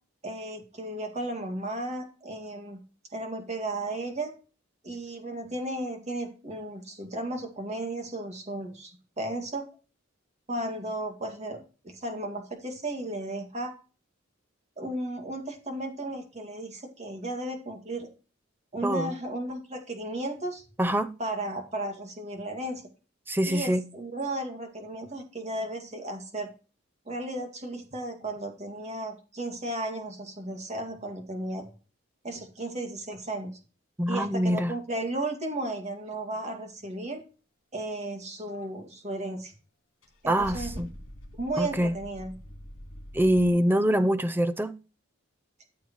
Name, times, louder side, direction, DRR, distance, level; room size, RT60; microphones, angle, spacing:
voice 1, 0.2-2.8 3.1-4.3 4.8-9.7 10.5-13.7 14.8-18.1 18.7-20.6 21.2-22.9 23.5-26.5 27.1-31.6 32.2-33.5 34.1-37.2 37.7-39.5 40.2-40.8 41.4-42.3, right 1 dB, 35° right, 2.2 m, -34 dB
voice 2, 18.8-19.1 20.8-21.1 23.3-23.8 34.0-34.7 40.3-40.9 41.6-41.9 43.1-44.7, equal, 10° right, 0.5 m, -24 dB
Car / Engine starting / Idling, 40.0-43.5, equal, 70° left, 3.5 m, -43 dB
14.0 x 7.0 x 3.1 m
head